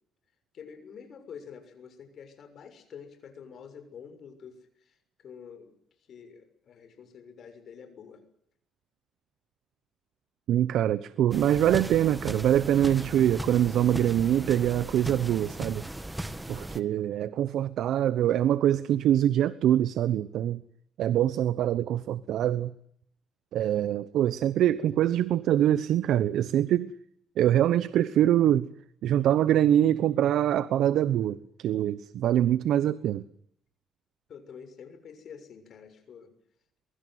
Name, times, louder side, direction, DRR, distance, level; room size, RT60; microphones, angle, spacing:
voice 1, 0.5-5.7 6.1-8.2 34.3-36.3, left 7 dB, 60° left, 6.7 m, -47 dB
voice 2, 10.5-15.8 16.5-20.6 21.0-22.7 23.5-26.9 27.4-28.7 29.0-33.2, right 11 dB, 75° right, 1.0 m, -24 dB
sound 1, 11.3-16.8, right 1 dB, 10° right, 1.9 m, -37 dB
23.0 x 23.0 x 9.5 m
cardioid pair, 95°, 0 cm